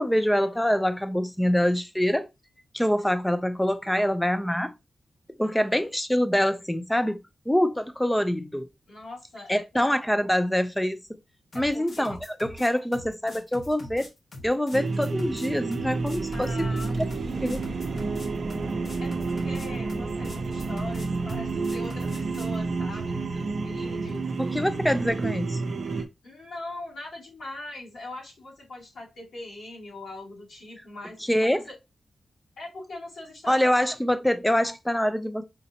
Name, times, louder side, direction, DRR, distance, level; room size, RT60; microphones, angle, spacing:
voice 1, 0.0-2.3 2.7-4.7 5.4-8.7 9.5-11.0 11.5-14.1 14.4-16.5 17.4-17.6 24.4-25.6 31.3-31.7 33.5-35.4, equal, 5° left, 0.4 m, -25 dB
voice 2, 8.9-9.9 11.5-12.2 16.3-17.0 19.0-24.5 25.8-31.2 31.5-31.8 32.6-33.6, left 2 dB, 90° left, 2.7 m, -41 dB
sound 1, 11.5-22.6, left 1 dB, 50° left, 1.1 m, -43 dB
sound 2, 14.7-26.0, right 3 dB, 55° right, 0.5 m, -30 dB
sound 3, 15.8-25.7, right 2 dB, 20° right, 0.9 m, -41 dB
5.1 x 2.8 x 2.7 m
wide cardioid pair, 140°, 0 cm